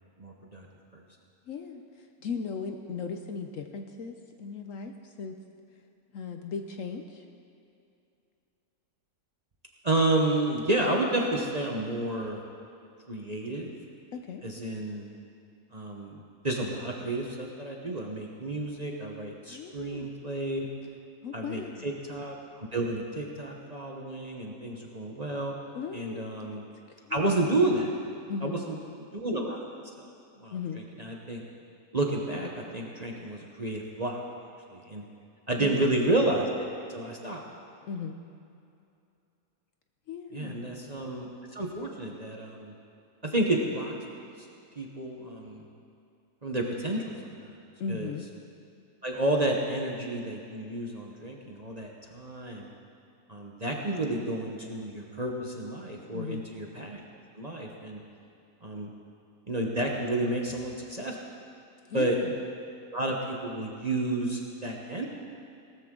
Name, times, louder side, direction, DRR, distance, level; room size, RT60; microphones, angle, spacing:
voice 1, 0.2-0.7 0.9-1.0 9.8-12.4 13.1-13.7 14.4-15.1 15.7-20.7 21.3-25.5 25.9-26.6 27.1-27.9 28.4-28.8 29.1-29.6 30.0-30.1 30.4-31.4 31.9-34.2 34.7-35.0 35.5-37.4 40.3-42.7 43.2-43.9 44.8-45.6 46.4-47.3 47.9-48.1 49.0-52.7 53.3-57.0 57.4-58.0 58.6-58.9 59.5-61.2 61.9-62.2 62.9-65.1, right 2 dB, 30° right, 0 dB, 0.9 m, -30 dB
voice 2, 1.5-5.4 6.1-7.3 14.1-14.4 19.5-20.1 21.2-21.9 25.7-26.5 27.0-27.2 28.3-28.6 30.5-30.8 34.9-35.0 35.6-36.0 37.8-38.2 40.1-40.7 47.8-48.3 56.1-56.4 61.9-62.3, left 5 dB, 60° left, 5 dB, 0.9 m, -37 dB
17.5 x 13.5 x 3.8 m, 2.6 s
omnidirectional pair, 1.7 m